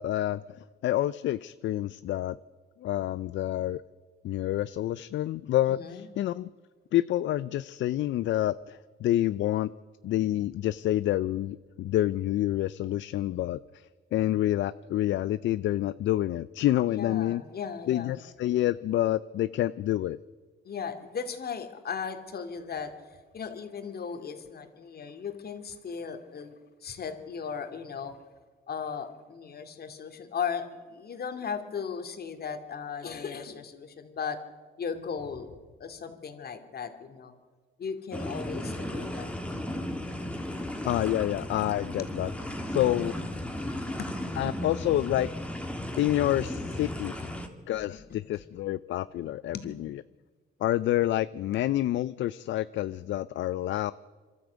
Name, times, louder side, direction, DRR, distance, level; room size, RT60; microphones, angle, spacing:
voice 1, 0.0-2.4 2.8-3.8 4.2-6.5 6.9-9.7 10.0-17.4 17.9-20.2 40.8-42.3 42.7-43.1 44.4-45.3 46.0-47.3 47.7-49.9 50.6-53.9, left 13 dB, 70° left, 16 dB, 0.5 m, -28 dB
voice 2, 5.7-6.1 16.9-18.2 20.6-22.9 23.3-26.5 26.8-28.2 28.7-34.4 34.8-35.5 35.8-37.3 37.8-39.3 42.0-42.1 44.0-44.1 47.2-47.3 47.7-48.4 49.5-49.6 51.5-51.6, left 6 dB, 50° left, 7 dB, 2.4 m, -37 dB
sound 1, 38.1-47.5, left 1 dB, 5° left, 2.5 m, -35 dB
25.0 x 13.0 x 8.2 m, 1.5 s
cardioid pair, 90°, 20 cm